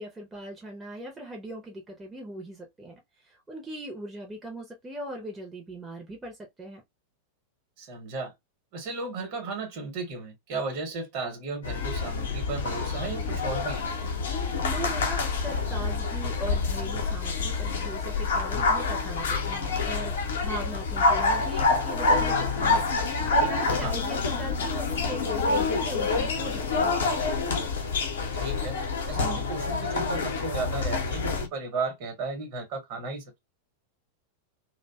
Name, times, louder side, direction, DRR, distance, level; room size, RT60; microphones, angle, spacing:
voice 1, 0.0-6.8 14.6-22.8 23.3-27.0, right 1 dB, 10° right, 0.6 m, -39 dB
voice 2, 7.8-8.3 8.7-13.8 23.7-23.9 28.4-28.8 29.1-33.4, right 4 dB, 45° right, 1.0 m, -34 dB
sound 1, 11.6-31.5, left 3 dB, 65° left, 0.6 m, -27 dB
2.5 x 2.1 x 2.3 m
figure-of-eight pair, 90°, 0 cm